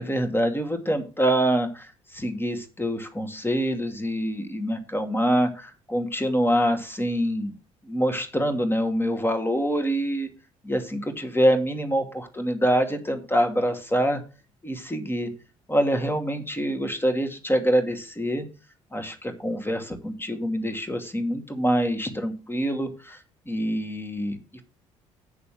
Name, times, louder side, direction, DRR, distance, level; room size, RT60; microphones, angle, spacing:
voice 1, 0.0-7.5 7.8-10.3 10.6-14.2 14.6-15.3 15.7-18.5 18.9-23.2 23.5-24.6, equal, 15° left, 7 dB, 2.5 m, -25 dB
8.7 x 6.8 x 6.1 m, 0.34 s
figure-of-eight pair, 50°, 17 cm